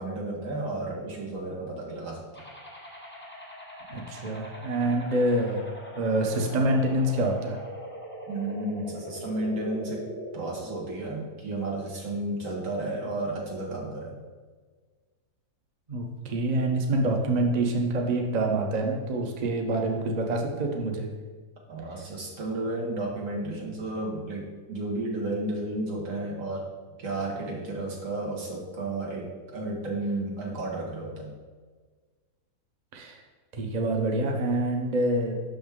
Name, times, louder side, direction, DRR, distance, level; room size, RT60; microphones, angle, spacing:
voice 1, 0.0-2.2 8.3-10.0 10.3-14.2 21.7-26.7 27.0-31.3, right 2 dB, 50° right, -3 dB, 1.7 m, -32 dB
sound 1, 2.3-10.3, equal, 10° left, 0.8 m, -42 dB
voice 2, 3.9-5.7 6.0-7.6 15.9-21.1 32.9-33.2 33.5-35.4, right 1 dB, 80° right, 1 dB, 0.3 m, -26 dB
6.0 x 5.7 x 3.6 m, 1.4 s
omnidirectional pair, 1.9 m